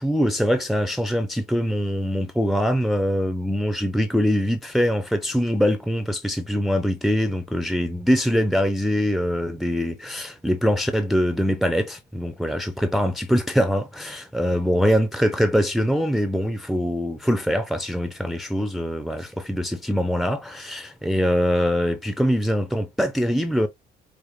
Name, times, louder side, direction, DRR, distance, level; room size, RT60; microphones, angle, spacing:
voice 1, 0.0-23.7, equal, ahead, 0.5 m, -23 dB
5.0 x 2.1 x 3.0 m
cardioid pair, 110°, 17 cm